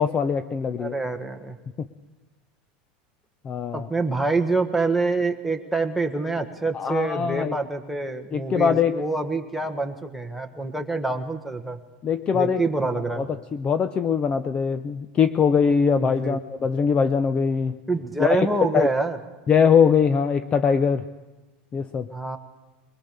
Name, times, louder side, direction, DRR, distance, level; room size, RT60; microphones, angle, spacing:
voice 1, 0.0-0.9 1.8-1.9 3.4-3.9 6.7-7.6 8.3-9.0 12.0-12.6 13.2-13.3 13.5-17.8 18.2-18.5 18.7-18.9 19.5-21.0 21.7-22.1, left 6 dB, 20° left, 12 dB, 0.6 m, -22 dB
voice 2, 0.8-1.6 3.7-11.8 12.3-13.3 16.0-16.4 17.9-19.2 22.1-22.4, right 3 dB, ahead, 3 dB, 1.3 m, -26 dB
22.0 x 21.0 x 6.7 m, 1.1 s
supercardioid pair, 160°, 5 cm